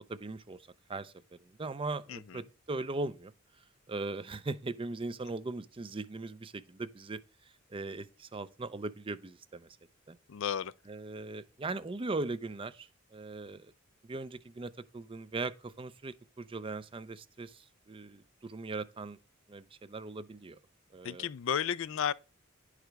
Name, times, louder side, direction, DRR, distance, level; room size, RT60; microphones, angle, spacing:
voice 1, 0.1-0.6 0.9-1.1 1.6-3.3 3.9-7.2 7.7-9.7 10.1-10.2 10.9-13.7 14.1-19.2 19.5-20.6 20.9-21.3, right 3 dB, 25° right, 0.5 m, -39 dB
voice 2, 2.1-2.4 10.3-10.7 21.0-22.1, left 8 dB, 65° left, 0.4 m, -33 dB
10.5 x 4.9 x 4.7 m
head